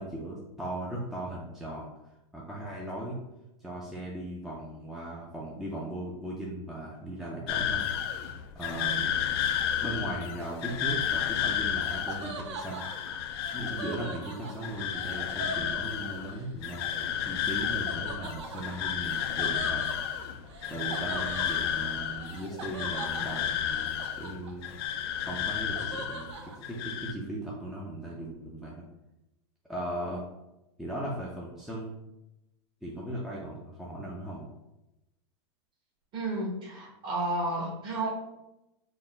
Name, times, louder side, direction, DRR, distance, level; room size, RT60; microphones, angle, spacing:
voice 1, 0.0-1.9 2.3-3.2 3.6-9.1 9.8-12.8 13.5-19.9 20.7-24.7 25.2-28.8 29.7-30.2 30.8-31.9 32.8-34.5, right 1 dB, ahead, -5 dB, 0.5 m, -38 dB
sound 1, 7.5-26.4 26.6-27.1, left 9 dB, 60° left, 0.4 m, -32 dB
Laughter, 10.4-16.4 17.9-24.8 25.1-26.6, right 4 dB, 85° right, 0.7 m, -42 dB
voice 2, 36.1-38.1, right 2 dB, 35° right, -3 dB, 1.3 m, -32 dB
3.8 x 2.2 x 3.8 m, 0.92 s
supercardioid pair, 135°, 14 cm